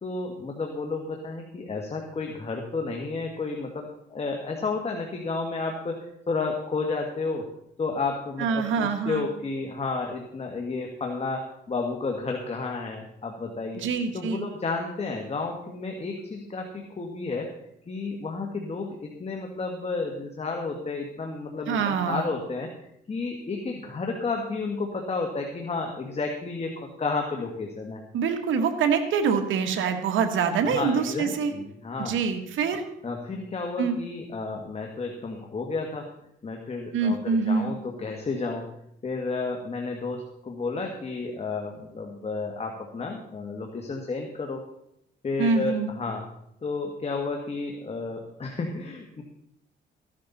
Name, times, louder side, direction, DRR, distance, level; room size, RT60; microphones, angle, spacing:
voice 1, 0.0-7.5 7.8-13.8 14.1-17.5 17.9-22.7 23.1-28.0 30.6-32.2 33.0-36.0 36.4-38.7 39.0-44.6 45.2-46.2 46.6-49.2, left 3 dB, 30° left, 2 dB, 1.8 m, -32 dB
voice 2, 8.4-9.2 13.7-14.5 21.7-22.3 28.1-31.5 32.0-32.8 33.8-34.0 36.9-37.7 45.4-45.9, right 5 dB, 75° right, 6 dB, 1.6 m, -25 dB
14.5 x 11.5 x 4.2 m, 0.77 s
cardioid pair, 90°, 20 cm